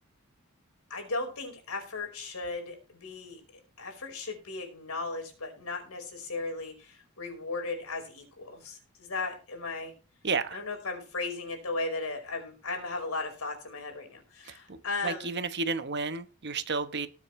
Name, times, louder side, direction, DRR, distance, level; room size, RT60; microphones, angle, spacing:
voice 1, 0.9-3.4 3.8-9.9 10.5-15.3, left 3 dB, 85° left, 4.8 m, -36 dB
voice 2, 10.2-10.6 14.4-14.8 15.0-17.1, right 4 dB, 50° right, 1.1 m, -32 dB
19.5 x 7.4 x 3.2 m
head